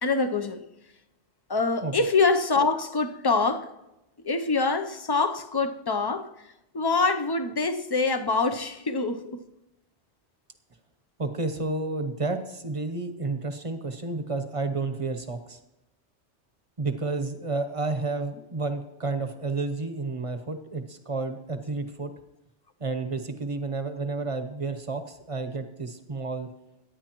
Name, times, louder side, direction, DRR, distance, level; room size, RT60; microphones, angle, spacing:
voice 1, 0.0-0.6 1.5-3.7 4.2-9.4, left 3 dB, 25° left, 8 dB, 0.6 m, -25 dB
voice 2, 11.2-15.6 16.8-22.1 22.8-26.5, right 3 dB, 30° right, 9 dB, 0.9 m, -31 dB
24.5 x 9.6 x 3.0 m, 0.94 s
omnidirectional pair, 1.2 m